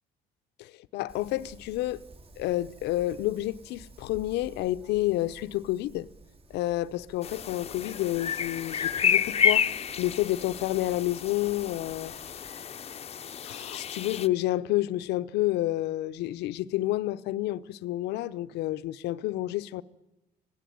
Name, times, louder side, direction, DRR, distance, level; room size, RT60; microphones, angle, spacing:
voice 1, 0.6-2.0 2.4-6.1 6.5-12.4 13.4-19.8, left 15 dB, 85° left, 0.9 m, -30 dB
Wind, 1.1-12.5, right 2 dB, 35° right, 2.3 m, -53 dB
sound 1, 7.2-14.3, left 8 dB, 35° left, 0.8 m, -30 dB
26.5 x 17.5 x 9.4 m
cardioid pair, 110°, 17 cm